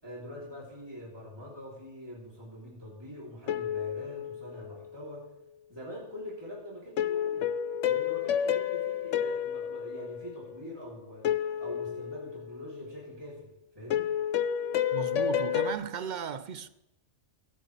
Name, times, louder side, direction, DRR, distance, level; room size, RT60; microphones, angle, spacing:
voice 1, 0.0-5.2 5.7-7.4 7.8-13.5 13.7-14.1, equal, 20° right, 3.2 m, -44 dB
sound 1, 3.5-5.0 7.0-10.6 11.2-12.8 13.9-15.7, left 9 dB, 80° left, 0.9 m, -30 dB
voice 2, 14.9-16.7, right 7 dB, 55° right, 0.5 m, -36 dB
23.0 x 9.1 x 3.3 m
omnidirectional pair, 1.3 m